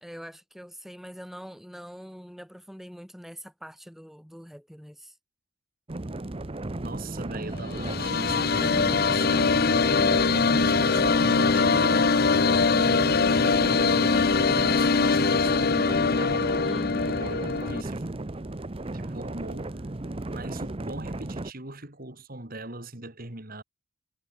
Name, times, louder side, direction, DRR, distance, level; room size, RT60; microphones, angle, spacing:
voice 1, 0.0-5.2 16.6-17.2, equal, ahead, 1.6 m, -43 dB
sound 1, 5.9-21.5, right 2 dB, 25° right, 0.7 m, -35 dB
voice 2, 6.7-11.9 12.8-16.7 17.0-18.1 18.9-19.7 20.3-23.6, right 2 dB, 45° right, 2.8 m, -39 dB
sound 2, 7.6-17.8, left 4 dB, 50° left, 0.7 m, -23 dB
head